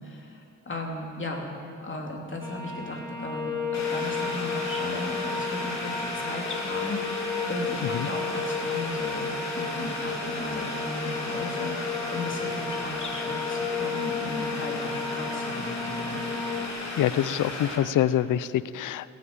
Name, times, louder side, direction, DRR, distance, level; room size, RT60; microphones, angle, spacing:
voice 1, 0.0-1.4 1.8-16.2, left 1 dB, 40° left, 0 dB, 3.1 m, -36 dB
sound 1, 2.4-16.7, left 4 dB, 10° left, 3.3 m, -33 dB
Boiling, 3.7-17.8, left 2 dB, 55° left, 3.0 m, -35 dB
voice 2, 16.9-19.1, left 11 dB, 75° left, 17 dB, 0.5 m, -25 dB
16.0 x 9.5 x 8.8 m, 2.6 s
cardioid pair, 65°, 31 cm